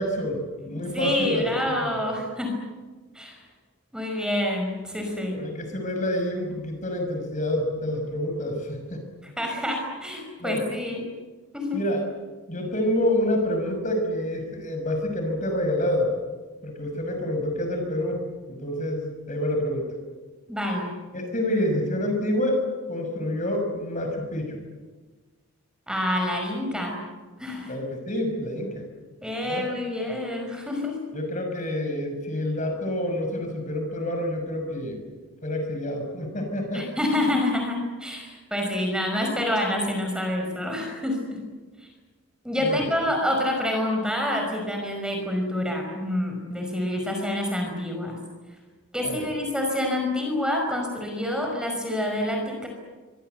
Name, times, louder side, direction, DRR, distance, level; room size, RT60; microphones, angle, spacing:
voice 1, 0.0-1.5 1.8-2.1 5.3-9.0 10.4-10.7 11.7-12.0 12.5-16.1 16.6-18.2 18.6-20.0 21.1-22.6 22.9-24.6 27.7-28.8 29.4-29.7 31.1-35.0 35.4-36.8 42.6-42.9 49.0-49.3, left 1 dB, 35° left, 4 dB, 5.9 m, -27 dB
voice 2, 0.7-2.7 3.1-3.4 3.9-5.4 9.2-11.1 11.5-11.8 20.5-20.9 25.9-27.0 27.4-27.7 29.2-31.0 36.7-41.5 42.4-48.2 48.9-52.7, left 1 dB, 5° right, 2 dB, 5.3 m, -27 dB
26.5 x 24.5 x 8.0 m, 1.3 s
head